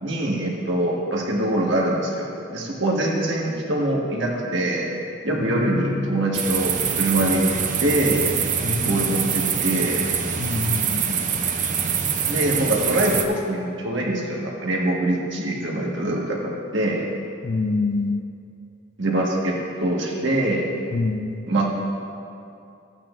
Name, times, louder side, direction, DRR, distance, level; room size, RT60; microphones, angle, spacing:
voice 1, 0.0-4.9 5.2-7.4 7.8-8.3 8.8-10.1 12.3-17.1 19.0-20.7 21.5-21.8, right 1 dB, 60° right, -2 dB, 1.5 m, -24 dB
voice 2, 5.4-6.3 8.6-9.5 10.4-11.2 17.4-18.2 20.9-21.4, left 3 dB, 40° left, 8 dB, 0.3 m, -27 dB
sound 1, 6.3-13.2, right 7 dB, 40° right, 0.5 m, -24 dB
14.0 x 8.8 x 2.5 m, 2.6 s
head